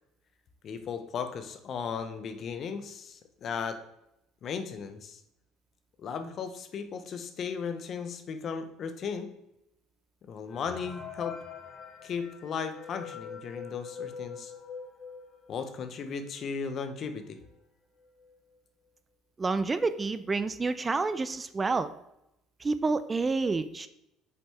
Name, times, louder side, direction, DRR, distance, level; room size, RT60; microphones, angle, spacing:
voice 1, 0.6-3.8 4.4-5.2 6.0-9.3 10.2-11.4 12.0-14.5 15.5-17.4, left 6 dB, 50° left, 8 dB, 0.8 m, -36 dB
sound 1, 10.5-15.9 16.4-16.5 16.7-16.8 17.5-17.6 18.0-18.3, left 6 dB, 35° left, 1.4 m, -43 dB
voice 2, 19.4-21.9 22.6-23.9, right 3 dB, 25° right, 13 dB, 0.4 m, -29 dB
6.8 x 5.1 x 3.4 m, 0.84 s
supercardioid pair, 75°, 0 cm